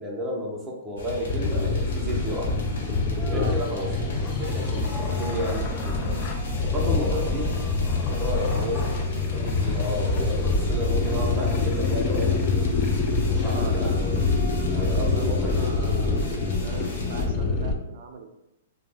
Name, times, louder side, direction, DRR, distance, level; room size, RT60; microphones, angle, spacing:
voice 1, 0.0-2.6 3.2-3.9 4.2-6.3 6.7-7.5 8.0-12.7 13.3-14.3 14.7-15.7, equal, 10° right, -3 dB, 0.6 m, -32 dB
sound 1, 1.0-17.2, left 2 dB, 75° left, 0.7 m, -33 dB
sound 2, 1.3-17.7, left 3 dB, 30° left, 0.3 m, -26 dB
Cheering, 3.2-15.6, equal, 15° left, 0.9 m, -46 dB
voice 2, 3.4-3.9 7.1-7.7 8.5-9.0 13.4-13.8 14.8-16.2 16.6-18.3, right 4 dB, 55° right, 4 dB, 0.4 m, -40 dB
2.3 x 2.0 x 3.4 m, 0.93 s
hypercardioid pair, 145°, 0 cm